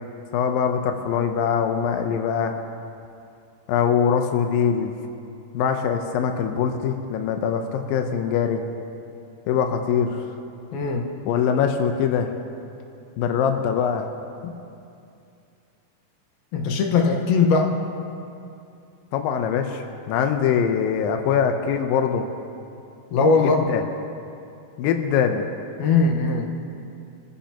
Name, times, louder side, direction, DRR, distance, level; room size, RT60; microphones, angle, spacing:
voice 1, 0.3-2.5 3.7-5.0 5.5-8.6 9.5-10.3 11.3-12.3 13.2-14.1 19.1-22.3 23.4-23.8 24.8-25.5, left 7 dB, 85° left, 5 dB, 2.0 m, -23 dB
voice 2, 10.7-11.1 14.4-14.5 16.5-17.7 23.1-23.6 25.8-26.5, left 4 dB, 65° left, 2 dB, 2.8 m, -20 dB
27.0 x 15.5 x 2.9 m, 2.6 s
omnidirectional pair, 5.2 m